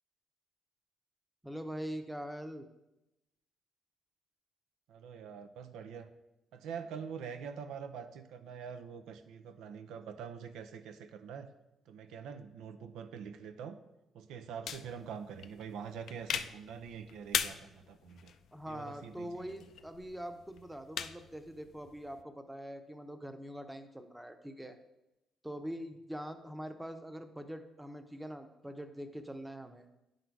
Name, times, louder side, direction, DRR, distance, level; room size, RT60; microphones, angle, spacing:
voice 1, 1.4-2.7 18.5-24.8 25.4-29.8, equal, 5° right, 7 dB, 0.8 m, -43 dB
voice 2, 4.9-6.1 6.5-11.5 11.9-13.8 14.1-18.3 18.7-19.5, right 7 dB, 90° right, 8 dB, 0.6 m, -45 dB
sound 1, 14.7-22.2, left 8 dB, 70° left, 0.4 m, -41 dB
10.0 x 3.9 x 4.6 m, 0.92 s
cardioid pair, 90°, 0 cm